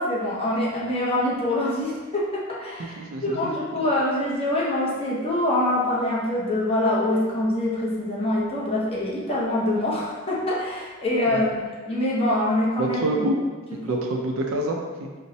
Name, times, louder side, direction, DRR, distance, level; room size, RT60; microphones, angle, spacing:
voice 1, 0.0-13.3 13.7-14.0, left 1 dB, 30° left, -5 dB, 0.7 m, -25 dB
voice 2, 2.8-3.9 11.3-11.4 12.8-13.4 13.7-15.1, right 1 dB, 75° right, 1 dB, 0.5 m, -27 dB
4.2 x 2.1 x 2.7 m, 1.4 s
head